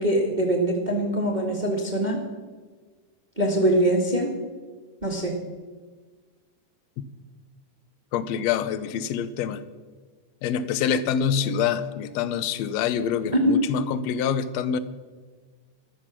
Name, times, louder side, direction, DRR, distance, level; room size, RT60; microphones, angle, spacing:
voice 1, 0.0-2.2 3.4-4.3 5.0-5.4 13.3-13.5, right 1 dB, 20° right, 0 dB, 1.4 m, -23 dB
voice 2, 8.1-9.6 10.4-14.8, left 8 dB, 70° left, 14 dB, 1.7 m, -26 dB
14.0 x 13.0 x 6.1 m, 1.4 s
omnidirectional pair, 3.7 m